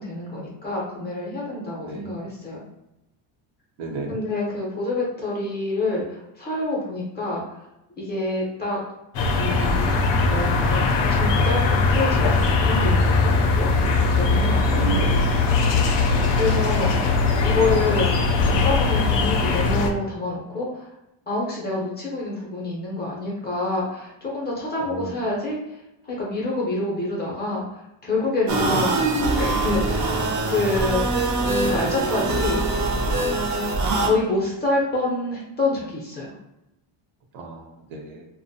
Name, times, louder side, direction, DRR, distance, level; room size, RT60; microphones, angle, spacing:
voice 1, 0.0-2.6 4.1-7.6 8.0-8.8 9.4-10.0 10.3-10.9 11.2-15.1 16.3-17.1 17.4-18.1 18.4-20.9 21.3-25.8 26.0-32.6 34.0-36.3, left 2 dB, 20° left, -5 dB, 0.6 m, -27 dB
voice 2, 1.8-2.2 3.8-4.2 14.7-15.4 16.1-16.5 24.8-25.1 28.6-28.8 37.3-38.3, right 3 dB, 70° right, 1 dB, 0.8 m, -32 dB
sound 1, 9.1-19.9, left 3 dB, 65° left, 0.6 m, -20 dB
sound 2, 28.5-34.1, right 2 dB, 40° right, 0.5 m, -23 dB
2.5 x 2.1 x 2.7 m, 0.91 s
cardioid pair, 140°, 48 cm